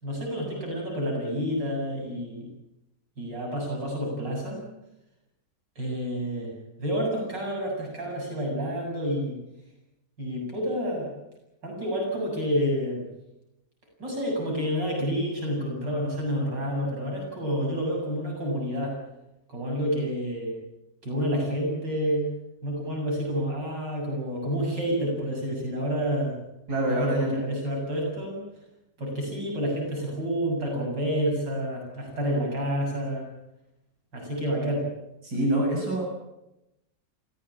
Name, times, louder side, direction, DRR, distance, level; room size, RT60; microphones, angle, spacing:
voice 1, 0.0-2.5 3.2-4.6 5.8-6.5 6.8-9.4 10.2-11.2 11.6-13.0 14.0-19.0 19.5-20.5 21.0-22.3 22.6-26.4 26.9-28.4 29.0-33.3 34.1-34.9, equal, 90° right, 0 dB, 8.2 m, -29 dB
voice 2, 26.7-27.4 35.2-36.3, right 1 dB, 60° right, -1 dB, 7.3 m, -26 dB
25.5 x 16.5 x 8.7 m, 0.90 s
omnidirectional pair, 1.9 m